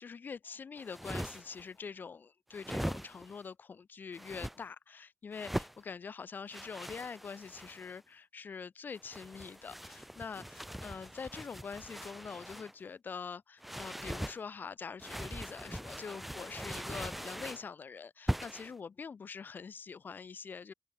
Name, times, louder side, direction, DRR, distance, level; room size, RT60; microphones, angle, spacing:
voice 1, 0.0-20.7, left 5 dB, 65° left, 1.8 m, -45 dB
sound 1, 0.8-1.6 2.5-3.4 4.1-4.6 5.3-5.8 6.5-8.0 8.9-12.7 13.6-14.4 15.0-17.7 18.3-18.7, equal, 5° right, 0.3 m, -41 dB
open air
wide cardioid pair, 130°, 3 cm